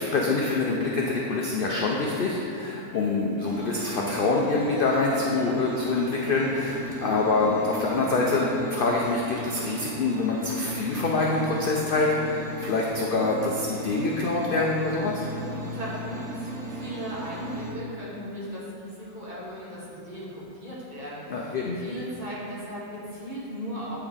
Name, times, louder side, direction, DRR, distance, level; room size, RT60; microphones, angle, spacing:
voice 1, 0.0-15.3 21.3-21.8, left 3 dB, 70° left, -2 dB, 0.5 m, -25 dB
sound 1, 3.4-17.7, right 2 dB, 55° right, 1.5 m, -37 dB
voice 2, 15.5-24.0, equal, 30° right, -8 dB, 1.5 m, -37 dB
8.7 x 4.5 x 3.6 m, 2.6 s
omnidirectional pair, 1.6 m